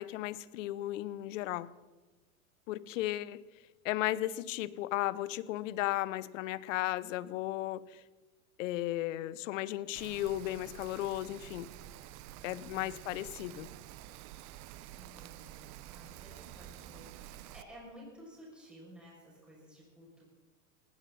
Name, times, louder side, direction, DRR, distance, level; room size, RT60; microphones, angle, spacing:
voice 1, 0.0-1.7 2.7-3.4 3.8-8.0 8.6-11.7 12.4-13.7, left 15 dB, 65° left, 19 dB, 0.9 m, -35 dB
Rain, 9.9-17.6, right 13 dB, 40° right, 0.8 m, -49 dB
voice 2, 12.5-13.0 14.9-20.2, equal, ahead, -5 dB, 6.8 m, -54 dB
19.0 x 16.0 x 4.2 m, 1.2 s
hypercardioid pair, 120°, 42 cm